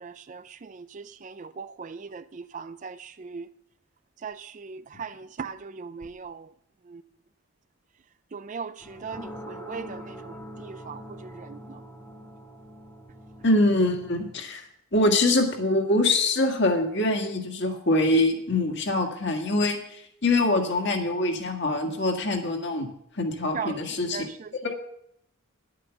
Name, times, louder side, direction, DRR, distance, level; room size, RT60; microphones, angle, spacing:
voice 1, 0.0-3.5 4.2-6.5 6.9-7.0 8.3-11.8 23.5-24.7, right 5 dB, 35° right, 0.4 m, -39 dB
sound 1, 8.8-14.3, equal, 10° left, 1.5 m, -43 dB
voice 2, 13.4-14.7 14.9-22.9 23.2-24.3 24.6-24.7, left 2 dB, 55° left, 1.8 m, -24 dB
11.0 x 8.5 x 7.0 m
head